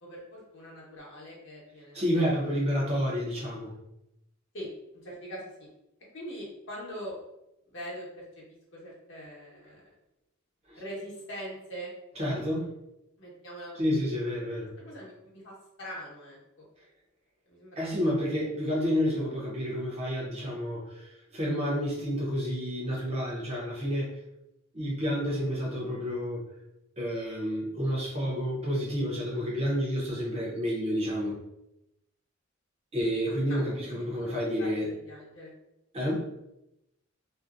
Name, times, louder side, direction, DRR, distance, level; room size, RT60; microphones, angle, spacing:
voice 1, 0.0-2.3 4.5-4.7 5.0-5.7 6.1-7.1 7.7-8.2 8.7-9.8 10.8-11.9 13.2-14.2 14.8-16.4 17.5-18.1 33.5-33.6 33.9-35.5, equal, 60° left, -4 dB, 0.9 m, -42 dB
voice 2, 1.9-3.7 10.7-10.8 12.2-12.7 13.7-14.7 17.8-24.1 24.7-26.4 27.0-31.3 32.9-34.9 35.9-36.3, equal, 30° right, -4 dB, 0.6 m, -30 dB
2.6 x 2.0 x 2.4 m, 0.86 s
head